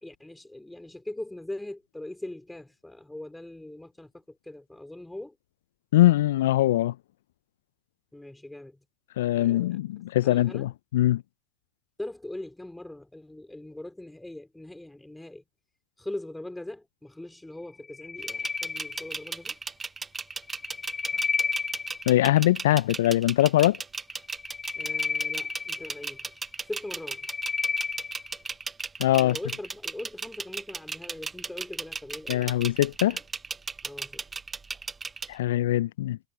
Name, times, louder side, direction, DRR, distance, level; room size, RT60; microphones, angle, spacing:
voice 1, 0.0-5.4 8.1-8.8 9.3-9.8 10.2-10.7 12.0-15.4 16.0-19.6 24.7-26.3 26.7-27.3 29.2-32.5 33.1-33.2 33.8-34.3, left 1 dB, 5° left, 2.8 m, -41 dB
voice 2, 5.9-6.9 9.2-11.2 22.1-23.8 29.0-29.4 32.3-33.2 35.3-36.2, left 14 dB, 70° left, 0.4 m, -22 dB
sound 1, 17.8-19.5 20.4-22.3 24.2-26.3 26.8-28.4, left 5 dB, 25° left, 1.3 m, -32 dB
sound 2, 18.2-35.4, right 4 dB, 20° right, 0.7 m, -35 dB
figure-of-eight pair, 70°, 0 cm